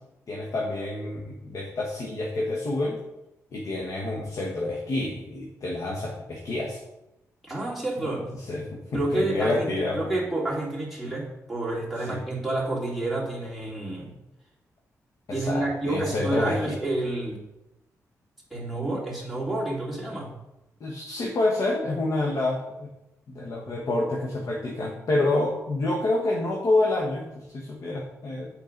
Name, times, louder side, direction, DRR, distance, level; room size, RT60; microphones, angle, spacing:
voice 1, 0.3-3.0 3.5-6.8 8.0-8.1 8.5-10.1 12.1-12.2 15.3-16.8 18.8-19.0 20.8-22.9 23.3-28.5, left 2 dB, 60° left, -1 dB, 1.3 m, -28 dB
voice 2, 7.4-8.2 8.9-14.1 15.3-17.4 18.5-20.3, right 2 dB, ahead, -5 dB, 2.5 m, -29 dB
8.1 x 4.6 x 5.2 m, 0.93 s
cardioid pair, 75°, 6 cm